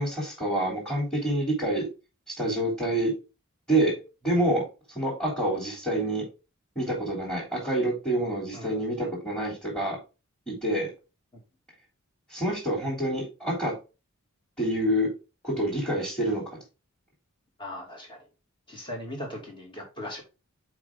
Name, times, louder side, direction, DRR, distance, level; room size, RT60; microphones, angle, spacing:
voice 1, 0.0-1.9 2.3-3.1 3.7-3.9 4.2-4.6 4.9-6.2 6.7-10.0 10.5-10.9 12.3-13.7 14.6-15.1 15.4-16.4, right 1 dB, 5° left, -6 dB, 3.4 m, -27 dB
voice 2, 17.6-18.2 18.7-20.2, left 1 dB, 20° left, 0 dB, 2.7 m, -38 dB
7.1 x 4.9 x 3.7 m, 0.30 s
head